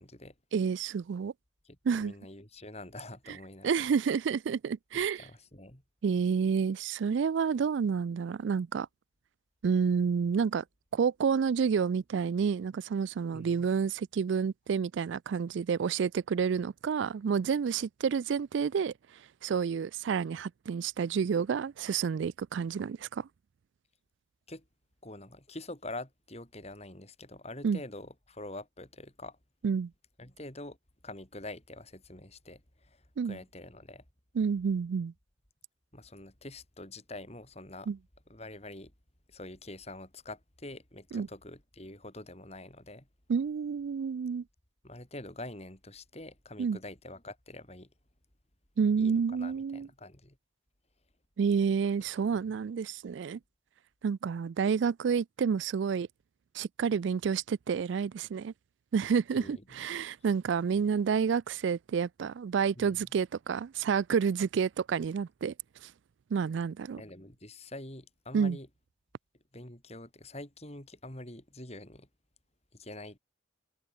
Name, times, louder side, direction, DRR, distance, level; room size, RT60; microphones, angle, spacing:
voice 1, 0.0-0.3 1.6-3.7 4.9-5.8 13.3-13.7 24.5-24.6 25.0-29.4 30.2-30.8 31.0-34.0 35.9-37.9 38.3-38.9 39.3-43.1 44.8-47.9 49.0-50.4 52.5-52.6 59.3-59.8 62.8-63.0 66.9-68.7 69.5-72.1 72.7-73.2, left 2 dB, 30° left, 4.1 m, -45 dB
voice 2, 0.5-1.3 1.9-2.1 3.6-5.3 6.0-8.9 9.6-10.6 10.9-18.9 19.4-23.3 27.6-27.8 29.6-29.9 33.2-33.4 34.4-35.1 37.9-38.0 41.1-41.3 43.3-44.4 46.6-46.8 48.8-49.9 51.4-53.4 54.0-56.1 56.5-58.5 58.9-65.5 65.8-65.9 66.3-67.0 68.3-68.6, right 6 dB, 70° right, 0.4 m, -29 dB
head